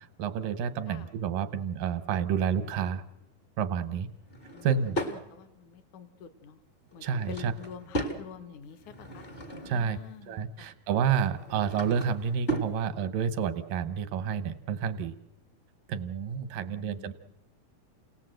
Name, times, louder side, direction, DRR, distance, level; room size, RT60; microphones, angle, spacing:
voice 1, 0.2-3.0 3.6-4.1 4.6-5.0 7.0-7.5 9.7-10.0 10.3-15.1 15.9-17.1, right 7 dB, 90° right, 12 dB, 2.6 m, -29 dB
Drawer open or close / Wood, 4.2-5.2 6.9-8.2 8.7-9.9 11.2-12.7, right 1 dB, 45° left, 0.7 m, -36 dB
voice 2, 5.0-6.6 6.9-9.2 9.7-10.7 16.6-17.1, left 7 dB, 70° left, 10 dB, 2.6 m, -47 dB
29.0 x 18.0 x 7.8 m, 0.97 s
omnidirectional pair, 3.7 m